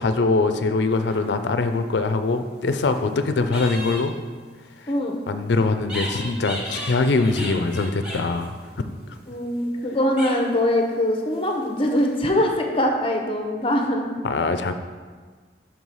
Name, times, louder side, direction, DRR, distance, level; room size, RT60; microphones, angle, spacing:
voice 1, 0.0-4.1 5.3-8.5 14.2-14.7, left 3 dB, 75° left, 9 dB, 0.5 m, -22 dB
sound 1, 0.9-1.7 2.4-3.1 3.5-4.1 5.8-9.8 10.2-10.7 11.3-12.1, equal, 5° right, 1.2 m, -36 dB
voice 2, 9.3-14.1, left 1 dB, 30° left, 2 dB, 0.7 m, -22 dB
5.9 x 4.7 x 5.4 m, 1.5 s
head